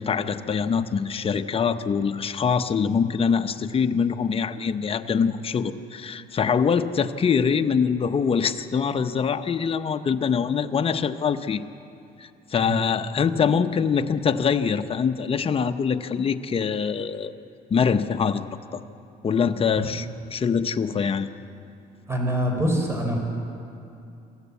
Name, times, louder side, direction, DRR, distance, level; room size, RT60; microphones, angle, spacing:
voice 1, 0.0-11.6 12.2-17.3 17.7-18.8 19.2-21.3, left 6 dB, 35° left, 9 dB, 0.9 m, -24 dB
voice 2, 22.1-23.2, equal, 15° right, 1 dB, 4.4 m, -24 dB
27.0 x 13.5 x 8.4 m, 2.7 s
cardioid pair, 110°, 17 cm